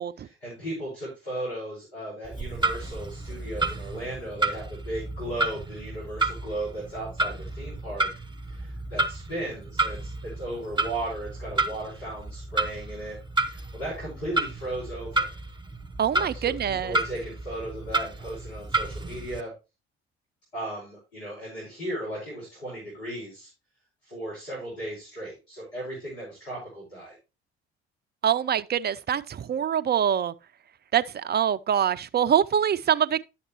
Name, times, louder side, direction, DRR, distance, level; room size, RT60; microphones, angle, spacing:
voice 1, 0.2-8.1 8.5-15.3 16.1-19.5 20.5-23.5 24.0-27.2, right 1 dB, 75° left, 4.9 m, -36 dB
Clock, 2.2-19.4, right 3 dB, 15° right, 0.9 m, -31 dB
voice 2, 16.0-17.0 28.2-30.3 30.9-33.2, right 9 dB, 30° right, 0.5 m, -24 dB
11.0 x 7.2 x 3.0 m
figure-of-eight pair, 50°, 32 cm